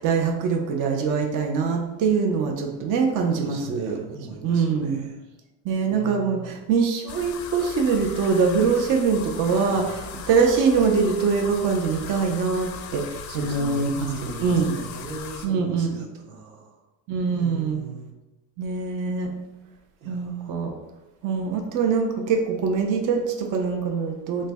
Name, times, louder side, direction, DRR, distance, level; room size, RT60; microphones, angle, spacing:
voice 1, 0.0-4.0 4.4-5.0 5.6-14.1 14.4-14.7 15.4-16.1 17.1-17.8 18.6-19.3 20.0-20.7 21.2-24.5, right 5 dB, 45° right, 2 dB, 0.6 m, -23 dB
voice 2, 3.3-5.2 5.9-6.6 9.6-10.1 13.3-16.8 17.3-18.1 20.0-20.5, right 3 dB, 85° right, 2 dB, 0.8 m, -38 dB
sound 1, 7.1-15.5, left 6 dB, 45° left, 0.4 m, -38 dB
3.8 x 2.1 x 3.4 m, 1.0 s
cardioid pair, 120°, 43 cm